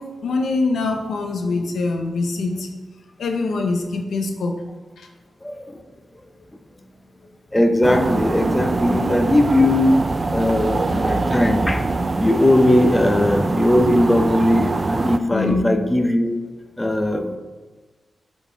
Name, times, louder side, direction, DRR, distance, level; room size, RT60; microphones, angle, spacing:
voice 1, 0.0-2.7 3.2-4.6 5.0-5.1 15.3-15.8, left 3 dB, 80° left, 4 dB, 0.7 m, -24 dB
voice 2, 5.4-5.8 7.5-11.8 12.2-16.4 16.8-17.4, left 1 dB, 15° left, 6 dB, 0.7 m, -19 dB
sound 1, 7.8-15.2, right 3 dB, 40° right, 0.4 m, -23 dB
8.0 x 3.9 x 3.8 m, 1.3 s
cardioid pair, 50°, 0 cm